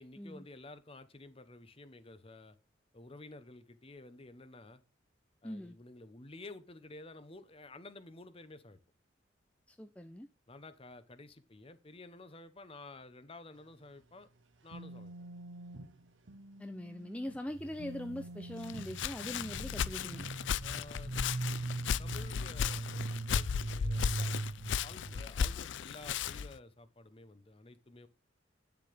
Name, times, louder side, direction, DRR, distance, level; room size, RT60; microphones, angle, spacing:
voice 1, 0.0-2.6 2.9-4.8 5.4-8.8 10.5-14.3 14.6-15.1 20.6-21.1 22.0-24.4 24.8-28.1, left 2 dB, 30° left, 0.9 m, -52 dB
voice 2, 5.4-5.8 9.7-10.3 16.6-20.3, left 1 dB, 5° left, 0.5 m, -42 dB
sound 1, 13.6-17.5 17.8-20.3, right 1 dB, 85° right, 1.0 m, -49 dB
sound 2, 17.5-25.2, right 2 dB, 55° right, 0.7 m, -40 dB
Walk footsteps, 18.6-26.6, left 7 dB, 75° left, 0.4 m, -36 dB
9.8 x 7.0 x 3.4 m
head